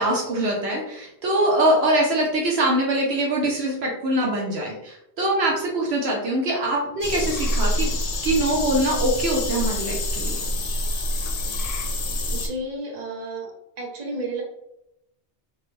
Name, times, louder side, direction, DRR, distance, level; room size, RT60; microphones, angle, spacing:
voice 1, 0.0-7.9 8.2-10.4, right 1 dB, 70° right, -2 dB, 0.9 m, -23 dB
sound 1, 7.0-12.5, left 1 dB, 60° left, 0.4 m, -26 dB
voice 2, 12.3-13.5 13.8-14.4, right 2 dB, 40° right, -2 dB, 0.9 m, -32 dB
3.4 x 2.1 x 3.1 m, 0.82 s
omnidirectional pair, 1.2 m